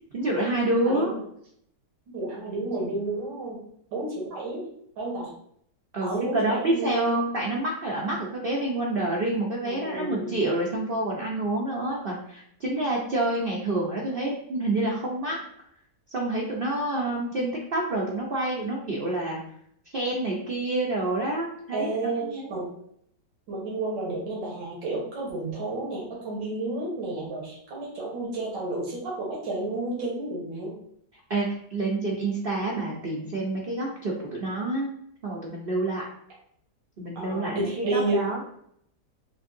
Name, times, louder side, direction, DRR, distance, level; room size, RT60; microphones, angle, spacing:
voice 1, 0.1-1.1 5.9-15.4 16.1-19.4 19.9-22.5 31.3-34.9 35.2-36.0 37.0-38.4, right 2 dB, 60° right, -3 dB, 0.6 m, -28 dB
voice 2, 0.8-1.2 2.1-3.6 3.9-5.3 6.0-7.2 9.6-10.4 21.7-22.7 23.5-30.7 37.2-38.2, right 2 dB, 85° right, -5 dB, 2.0 m, -31 dB
6.1 x 2.7 x 2.6 m, 0.68 s
omnidirectional pair, 1.9 m